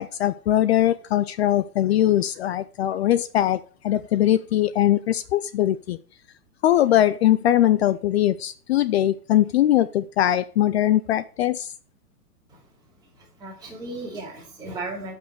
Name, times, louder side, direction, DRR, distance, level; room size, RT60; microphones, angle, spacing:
voice 1, 0.0-6.0 6.6-11.7, left 12 dB, 45° left, 0.5 m, -21 dB
voice 2, 13.0-15.1, right 2 dB, 10° right, 4.0 m, -36 dB
10.5 x 5.4 x 6.3 m
hypercardioid pair, 125°, 46 cm